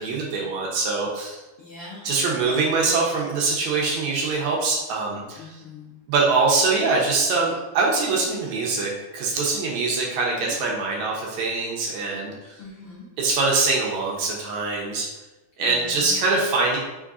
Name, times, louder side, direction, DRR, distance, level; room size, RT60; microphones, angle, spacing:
voice 1, 0.0-1.4 2.0-5.6 6.1-12.3 13.2-15.1 15.6-16.8, right 3 dB, 75° right, -2 dB, 2.0 m, -23 dB
voice 2, 1.6-2.1 5.4-5.9 10.4-10.5 12.6-13.1 15.6-16.1, left 2 dB, 80° left, -6 dB, 1.2 m, -42 dB
4.6 x 3.7 x 2.4 m, 1.1 s
omnidirectional pair, 3.4 m